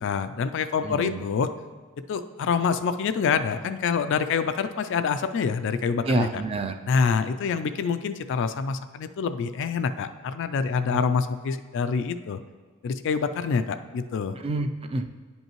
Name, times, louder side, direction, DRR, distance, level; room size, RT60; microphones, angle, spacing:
voice 1, 0.0-1.5 2.1-6.4 6.9-12.4 12.8-14.4, left 6 dB, 55° left, 10 dB, 0.3 m, -26 dB
voice 2, 0.8-1.2 6.1-6.7 10.9-11.1 14.4-15.2, right 2 dB, 25° right, 7 dB, 0.3 m, -28 dB
9.6 x 5.4 x 3.0 m, 1.4 s
head